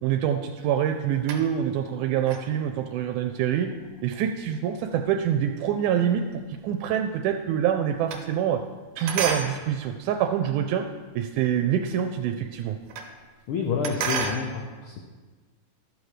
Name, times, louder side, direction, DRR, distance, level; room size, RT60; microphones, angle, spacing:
voice 1, 0.0-3.7 4.0-8.6 9.0-10.8 11.2-12.8, right 9 dB, 90° right, 5 dB, 2.1 m, -26 dB
sound 1, 0.6-1.8 2.2-6.7 7.0-8.8 9.1-11.1 11.6-11.7 11.9-12.0 12.2-13.2 13.5-14.5, right 5 dB, 70° right, 2.2 m, -34 dB
voice 2, 13.5-15.1, left 5 dB, 80° left, 1 dB, 1.2 m, -29 dB
12.0 x 6.6 x 4.9 m, 1.4 s
omnidirectional pair, 3.5 m